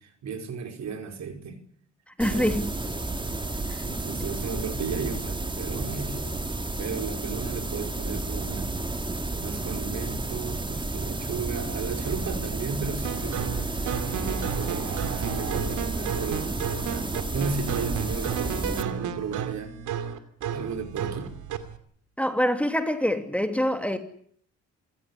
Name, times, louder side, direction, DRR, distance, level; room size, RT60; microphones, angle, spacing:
voice 1, 0.0-1.6 2.2-2.5 3.8-6.4 6.8-8.7 9.4-13.7 14.1-16.6 16.9-20.2 20.5-21.3, right 5 dB, 65° right, 5.0 m, -35 dB
voice 2, 2.2-2.7 22.2-24.0, equal, 5° left, 2.7 m, -25 dB
sound 1, 2.2-18.8, right 2 dB, 15° right, 2.1 m, -31 dB
sound 2, 13.0-21.8, right 8 dB, 85° right, 2.5 m, -32 dB
27.5 x 15.5 x 9.8 m
cardioid pair, 90°, 30 cm